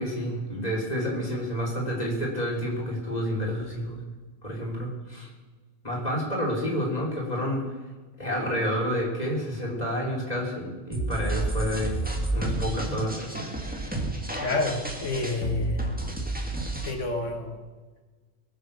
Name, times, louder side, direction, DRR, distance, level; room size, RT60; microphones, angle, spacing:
voice 1, 0.0-4.0 4.4-5.3 5.8-7.6 8.2-12.0 12.3-13.4, equal, 35° left, -4 dB, 4.1 m, -29 dB
sound 1, 10.9-16.9, right 2 dB, 5° right, 1.9 m, -30 dB
voice 2, 14.4-15.9 16.8-17.6, left 2 dB, 75° left, 4 dB, 2.1 m, -29 dB
22.0 x 7.6 x 7.0 m, 1.4 s
omnidirectional pair, 1.3 m